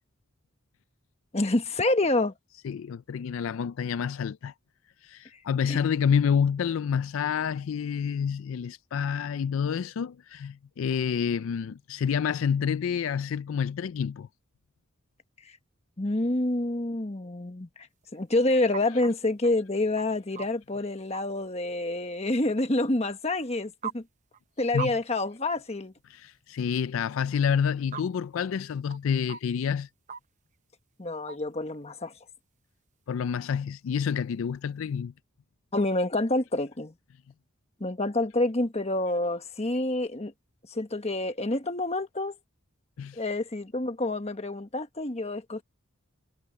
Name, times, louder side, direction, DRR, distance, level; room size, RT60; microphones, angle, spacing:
voice 1, 1.3-2.3 5.7-5.8 16.0-17.9 18.1-24.0 24.6-25.9 31.0-32.1 35.7-36.9 37.8-40.3 40.7-42.3 43.2-45.6, left 2 dB, 30° left, 1.3 m, -28 dB
voice 2, 2.6-4.5 5.0-14.3 24.7-24.9 26.1-29.9 33.1-35.1 43.0-43.2, left 7 dB, 70° left, 0.3 m, -28 dB
sound 1, 18.0-19.1 19.4-19.6 20.0-20.6 21.1-21.2 23.2-23.3 23.8-23.9 24.3-24.4 24.8-24.9 25.2-25.3 27.3-27.4 27.9-28.0 28.6-28.7 28.9-29.0 29.3-29.4 30.1-30.2 31.3-31.4 31.7-31.8, right 7 dB, 35° right, 0.8 m, -37 dB
head